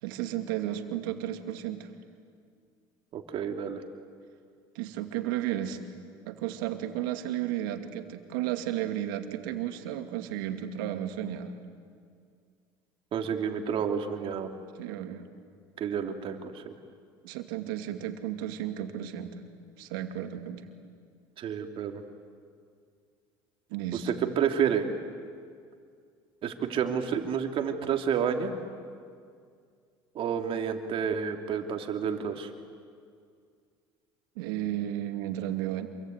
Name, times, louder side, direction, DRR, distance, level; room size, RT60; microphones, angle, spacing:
voice 1, 0.0-1.9 4.7-5.8 6.3-11.5 14.8-15.3 17.2-19.4 19.8-20.7 23.7-24.1 34.4-35.9, right 12 dB, 80° right, 6 dB, 2.4 m, -33 dB
voice 2, 3.1-3.8 13.1-14.5 15.8-16.7 21.4-22.0 24.0-24.9 26.4-28.5 30.1-32.5, right 7 dB, 55° right, 4 dB, 3.1 m, -30 dB
27.5 x 23.5 x 9.4 m, 2.2 s
hypercardioid pair, 80°, 11 cm